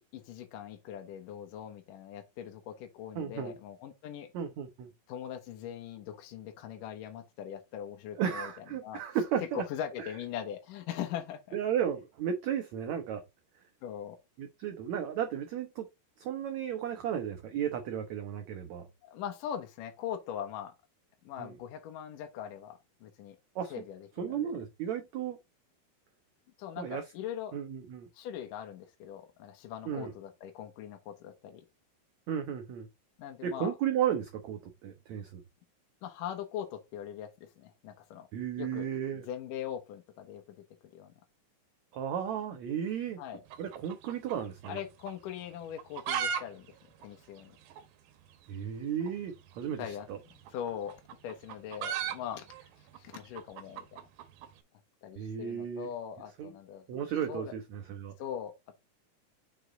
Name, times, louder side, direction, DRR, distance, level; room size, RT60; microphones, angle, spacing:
voice 1, 0.0-4.3 5.1-9.0 9.4-11.6 13.8-14.2 19.0-20.7 21.2-23.4 23.7-24.5 26.6-27.6 28.1-31.6 33.2-33.7 36.0-38.3 38.6-40.4 40.9-41.1 43.2-43.4 44.7-47.6 49.8-50.1 50.5-51.0 51.2-52.7 53.0-54.0 55.0-57.5 58.2-58.7, left 9 dB, 70° left, 2.5 m, -41 dB
voice 2, 3.1-3.5 4.3-4.9 8.2-9.6 11.5-13.2 14.4-15.8 16.2-18.9 21.4-21.5 23.5-23.7 24.2-25.4 26.8-27.0 27.5-28.1 29.9-30.1 32.3-32.9 33.4-35.4 38.3-39.2 41.9-43.2 43.6-44.8 48.5-50.2 55.2-55.9 56.4-56.5 56.9-58.1, right 9 dB, 90° right, 1.5 m, -34 dB
sound 1, 43.5-44.8 45.1-45.2 45.7-46.4 46.7-46.8 47.0-47.1 47.7-47.8 49.0-49.2 50.3-54.5, right 8 dB, 75° right, 2.4 m, -36 dB
6.1 x 5.0 x 3.8 m
omnidirectional pair, 4.4 m